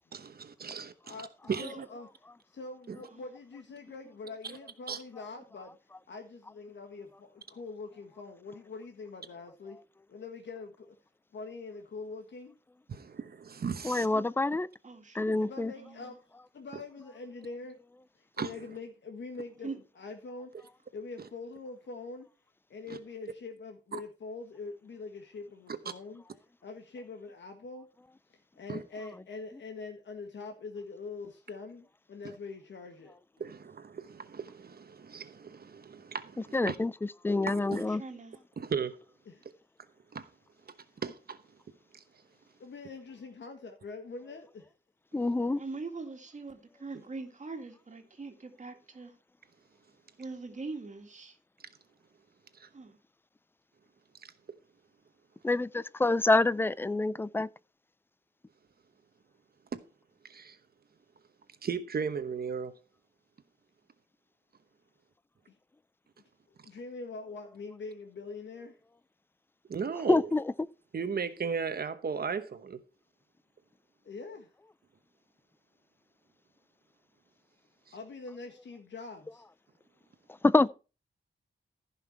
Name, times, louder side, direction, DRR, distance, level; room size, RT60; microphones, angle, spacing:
voice 1, 0.1-1.1 1.5-1.7 2.9-3.0 4.9-5.0 12.9-14.1 18.4-18.5 28.7-28.8 33.4-36.8 37.5-37.8 38.6-39.0 40.1-40.3 41.0-41.4 52.6-52.7 60.2-60.6 61.6-62.7 69.7-70.2 70.9-72.8, right 6 dB, 55° right, 1.0 m, -36 dB
voice 2, 1.0-2.1 2.5-5.8 6.1-9.8 10.1-11.0 11.3-12.6 15.4-16.2 16.5-17.8 18.1-19.7 20.0-20.5 20.9-22.3 22.7-26.2 26.6-27.9 28.6-33.2 39.2-39.5 42.6-44.6 66.6-68.8 74.0-74.5 77.9-79.4, left 4 dB, 75° left, 1.6 m, -44 dB
voice 3, 13.8-14.7 15.1-15.7 36.5-38.0 45.1-45.6 55.4-57.5 70.1-70.5 80.4-80.7, left 2 dB, 10° left, 0.4 m, -26 dB
voice 4, 14.8-15.3 15.8-16.2 19.6-19.8 37.7-38.4 45.6-49.2 50.2-51.4 52.7-53.0, right 3 dB, 40° right, 2.1 m, -42 dB
15.0 x 5.8 x 4.5 m
wide cardioid pair, 150°, 19 cm